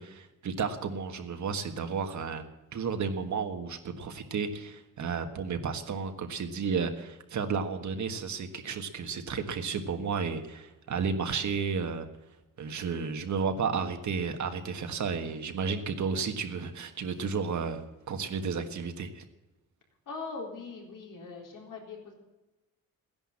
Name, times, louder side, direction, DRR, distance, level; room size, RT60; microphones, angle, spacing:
voice 1, 0.0-12.1 12.6-19.2, right 5 dB, 60° right, 6 dB, 1.6 m, -32 dB
voice 2, 20.1-22.1, left 4 dB, 70° left, 0 dB, 4.2 m, -41 dB
16.0 x 10.5 x 7.4 m, 1.0 s
wide cardioid pair, 175°, 33 cm